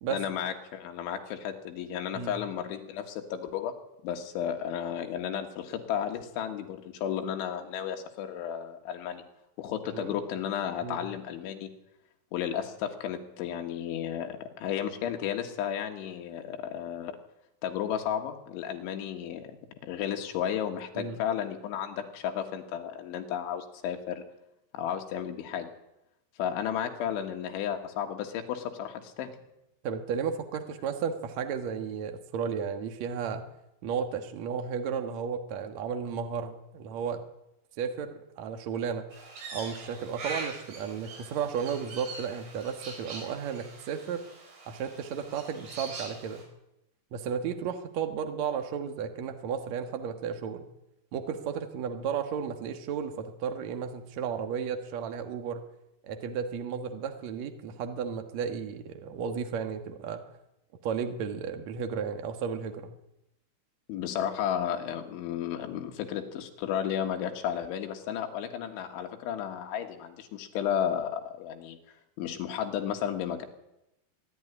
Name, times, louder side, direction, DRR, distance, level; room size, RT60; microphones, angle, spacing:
voice 1, 0.1-3.8 4.0-9.2 9.6-11.7 12.3-17.1 17.6-19.6 19.8-24.2 24.7-25.7 26.4-29.3 63.9-71.8 72.2-73.5, left 9 dB, 75° left, 4 dB, 3.9 m, -33 dB
voice 2, 29.8-33.4 33.8-37.2 37.8-39.1 39.5-44.2 44.7-46.4 47.1-50.7 51.1-55.6 56.0-60.2 60.8-62.9, right 7 dB, 85° right, 6 dB, 1.5 m, -33 dB
Crow, 39.1-46.4, right 3 dB, 65° right, 7.3 m, -43 dB
23.5 x 11.0 x 9.9 m, 0.89 s
omnidirectional pair, 5.7 m